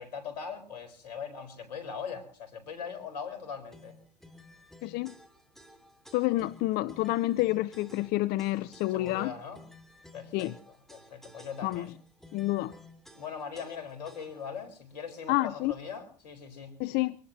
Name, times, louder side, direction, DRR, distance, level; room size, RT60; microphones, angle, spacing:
voice 1, 0.0-4.0 8.9-9.6 10.1-10.5 10.9-11.9 13.1-16.7, left 6 dB, 80° left, 4.5 m, -40 dB
sound 1, 3.7-14.6, left 1 dB, ahead, 3.1 m, -54 dB
voice 2, 4.8-5.1 6.1-9.3 10.3-10.5 11.6-11.9 12.3-12.7 15.3-15.7 16.8-17.2, left 17 dB, 50° left, 0.7 m, -28 dB
25.5 x 19.0 x 2.8 m
hypercardioid pair, 90°, 21 cm